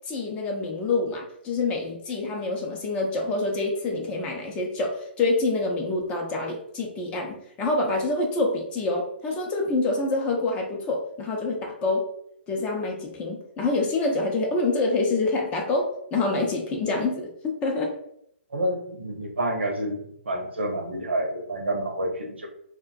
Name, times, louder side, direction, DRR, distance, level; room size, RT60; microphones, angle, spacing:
voice 1, 0.1-12.1 12.5-17.9, left 2 dB, 20° left, 0 dB, 0.5 m, -26 dB
voice 2, 18.5-20.0 20.3-22.5, right 1 dB, 70° right, 2 dB, 0.6 m, -28 dB
2.3 x 2.1 x 2.5 m, 0.73 s
figure-of-eight pair, 125°, 6 cm